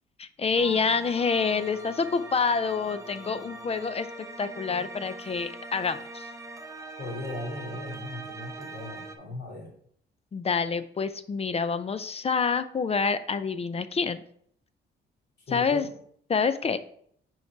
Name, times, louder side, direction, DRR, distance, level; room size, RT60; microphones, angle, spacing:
voice 1, 0.2-6.3 10.3-14.2 15.5-15.9 16.3-16.8, left 5 dB, 30° left, 12 dB, 0.5 m, -27 dB
sound 1, 0.6-9.2, right 2 dB, 15° right, 0.8 m, -42 dB
voice 2, 7.0-9.7 15.5-15.9, left 2 dB, 60° left, -2 dB, 2.8 m, -37 dB
5.5 x 4.7 x 4.5 m, 0.64 s
cardioid pair, 90°, 20 cm